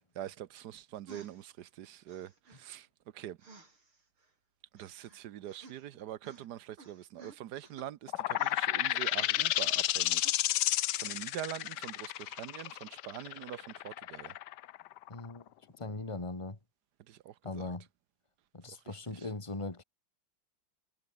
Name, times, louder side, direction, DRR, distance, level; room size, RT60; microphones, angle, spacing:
voice 1, 0.2-2.9 3.1-3.4 4.7-14.3 17.1-17.7 18.9-19.3, right 12 dB, 65° right, 1.1 m, -44 dB
sound 1, 1.1-1.5 2.1-2.6 3.4-4.3 4.8-6.0 6.2-6.5 6.8-7.9 8.3-9.9 10.2-10.4, right 3 dB, 80° right, 6.7 m, -55 dB
sound 2, 8.1-15.4, left 14 dB, 70° left, 1.1 m, -31 dB
voice 2, 15.1-15.4 15.8-16.6 17.4-17.9 18.5-19.8, left 2 dB, 15° left, 2.3 m, -39 dB
omnidirectional pair, 2.3 m